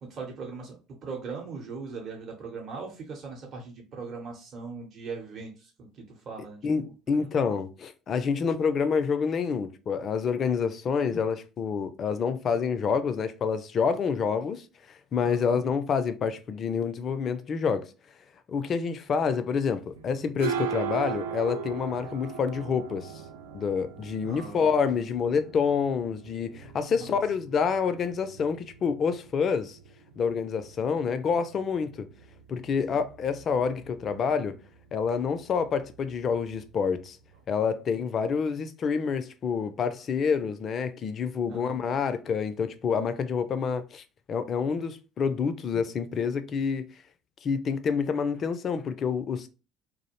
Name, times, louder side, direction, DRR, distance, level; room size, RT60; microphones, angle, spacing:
voice 1, 0.0-5.7 6.3-6.6 15.3-15.6 24.2-24.8 27.0-27.2 32.9-33.0 41.5-41.8, right 4 dB, 50° right, 0.8 m, -39 dB
voice 2, 6.6-17.9 18.5-23.1 23.5-29.8 30.2-32.1 32.5-34.6 34.9-37.2 37.5-46.9 47.4-49.5, left 6 dB, 45° left, 0.4 m, -28 dB
sound 1, 20.0-37.4, right 7 dB, 80° right, 0.3 m, -40 dB
2.4 x 2.0 x 2.9 m
hypercardioid pair, 60°, 0 cm